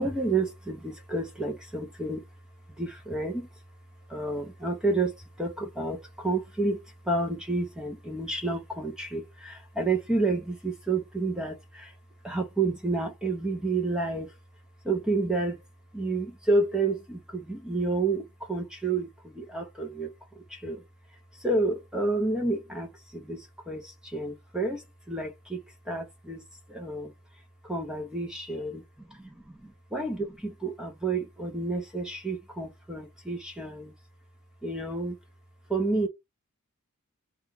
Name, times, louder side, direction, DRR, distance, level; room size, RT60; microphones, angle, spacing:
voice 1, 0.0-2.2 2.8-3.5 4.1-6.8 7.0-11.9 12.2-14.3 14.8-15.6 15.9-20.8 21.4-25.6 25.9-26.4 26.7-27.1 27.6-28.8 29.1-29.2 29.5-33.9 34.6-35.2 35.7-36.1, right 2 dB, 5° right, 0.6 m, -30 dB
2.9 x 2.3 x 3.5 m
head